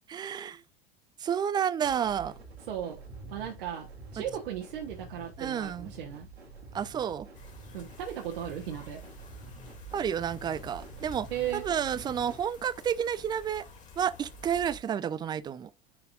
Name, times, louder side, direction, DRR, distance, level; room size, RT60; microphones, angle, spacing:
voice 1, 0.1-0.6 1.2-2.3 5.4-5.9 6.7-7.3 9.9-11.3 11.5-13.7 14.0-15.7, right 8 dB, 15° right, 0.4 m, -30 dB
sound 1, 1.8-12.4, right 2 dB, 80° right, 2.6 m, -47 dB
voice 2, 2.7-3.0 3.3-6.3 7.7-9.0 11.3-11.6, right 10 dB, 60° right, 1.4 m, -36 dB
sound 2, 7.3-14.8, left 2 dB, 25° left, 2.3 m, -50 dB
9.7 x 4.2 x 2.6 m
figure-of-eight pair, 85°, 31 cm